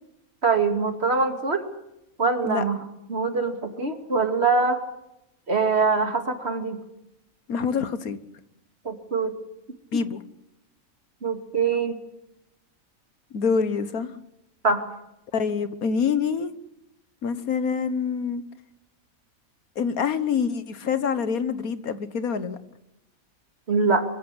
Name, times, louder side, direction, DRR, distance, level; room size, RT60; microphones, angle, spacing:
voice 1, 0.4-1.6 2.2-2.8 3.1-4.8 5.5-6.8 8.8-9.3 11.2-12.0 14.6-14.8 23.7-24.0, right 4 dB, 45° right, 6 dB, 2.7 m, -23 dB
voice 2, 7.5-8.2 9.9-10.2 13.3-14.1 15.3-16.5 17.2-18.4 19.8-22.6, left 6 dB, 80° left, 13 dB, 1.7 m, -26 dB
24.0 x 15.0 x 9.8 m, 0.87 s
omnidirectional pair, 1.5 m